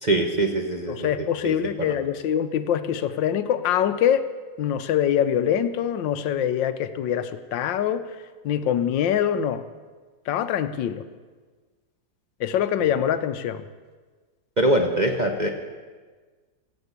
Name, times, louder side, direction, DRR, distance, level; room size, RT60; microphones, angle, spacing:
voice 1, 0.0-1.1 1.4-1.9 12.8-12.9 14.6-15.5, right 1 dB, 35° right, 2 dB, 0.8 m, -23 dB
voice 2, 0.9-4.2 4.6-8.0 8.4-9.6 10.3-11.0 12.4-13.6, left 9 dB, 80° left, 12 dB, 1.4 m, -24 dB
17.0 x 7.9 x 8.1 m, 1.4 s
omnidirectional pair, 2.0 m